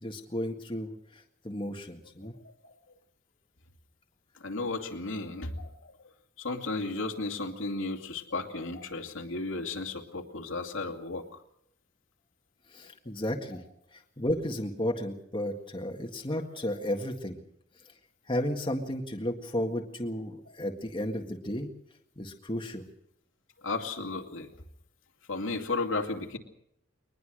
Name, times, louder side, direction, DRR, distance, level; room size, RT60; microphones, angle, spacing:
voice 1, 0.0-2.3 12.7-13.6 13.9-17.4 18.3-21.7 22.2-22.8, left 1 dB, 25° left, 2 dB, 1.8 m, -33 dB
voice 2, 4.4-5.9 6.4-11.4 23.6-24.5 25.3-26.4, left 3 dB, 80° left, 4 dB, 2.6 m, -34 dB
23.0 x 20.5 x 6.4 m, 0.74 s
head